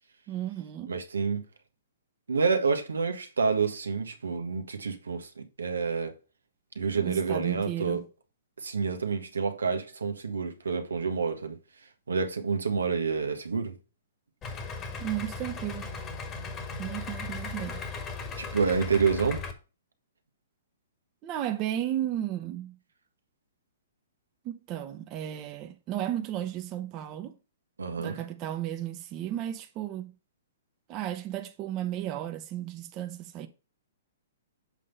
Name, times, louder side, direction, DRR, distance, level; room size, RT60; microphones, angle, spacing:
voice 1, 0.3-0.9 7.0-8.1 15.0-15.9 16.8-17.8 21.2-22.8 24.4-27.3 28.0-30.1 30.9-33.5, right 12 dB, 30° right, 0.9 m, -34 dB
voice 2, 0.9-1.4 2.3-6.1 6.7-8.0 8.6-11.6 12.1-13.7 18.4-19.4 27.8-28.2, right 5 dB, 90° right, 1.3 m, -28 dB
Idling, 14.4-19.5, left 4 dB, 25° left, 1.5 m, -37 dB
7.5 x 3.7 x 5.5 m
hypercardioid pair, 130°, 0 cm